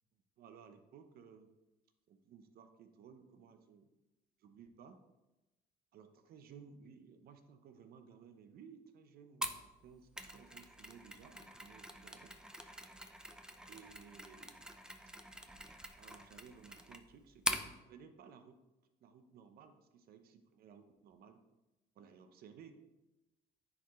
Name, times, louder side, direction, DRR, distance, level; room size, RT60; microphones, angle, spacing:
voice 1, 0.4-1.5 2.1-3.9 4.4-5.0 5.9-12.3 13.7-14.6 16.0-18.6 19.0-21.4 21.9-22.7, right 6 dB, 65° right, 8 dB, 0.8 m, -58 dB
Mechanisms, 9.4-17.7, right 1 dB, 5° right, 0.5 m, -44 dB
9.9 x 4.9 x 3.2 m, 1.0 s
cardioid pair, 110°, 17 cm